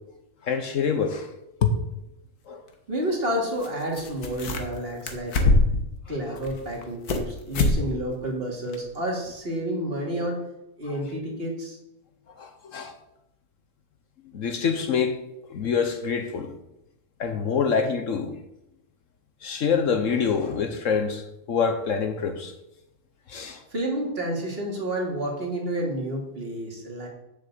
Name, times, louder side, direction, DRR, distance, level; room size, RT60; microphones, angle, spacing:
voice 1, 0.4-1.3 1.6-1.8 2.5-2.6 12.4-12.9 14.3-15.2 15.5-16.5 17.2-18.4 19.4-22.5 23.3-23.6, left 6 dB, 60° left, 1.2 m, -26 dB
sound 1, 1.9-2.0 3.6-3.7 3.9-4.8 5.1-5.9 6.4-7.3 7.5-7.8 8.1-8.2 8.7-8.8, left 2 dB, 85° left, 1.8 m, -23 dB
voice 2, 2.9-5.5 6.1-10.4 10.8-11.8 23.7-27.1, right 1 dB, 40° right, 2.5 m, -30 dB
7.8 x 6.5 x 7.7 m
omnidirectional pair, 1.6 m